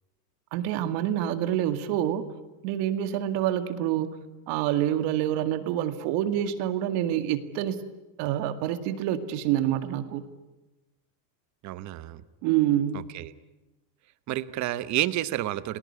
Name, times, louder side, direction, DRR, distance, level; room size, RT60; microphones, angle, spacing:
voice 1, 0.5-2.3 2.6-4.2 4.5-7.8 8.2-10.2 12.4-13.0, right 11 dB, 60° right, 10 dB, 2.2 m, -27 dB
voice 2, 11.6-12.2 12.9-13.3 14.3-15.8, right 14 dB, 35° right, 15 dB, 1.1 m, -30 dB
29.5 x 19.5 x 9.9 m, 1.0 s
supercardioid pair, 150°, 47 cm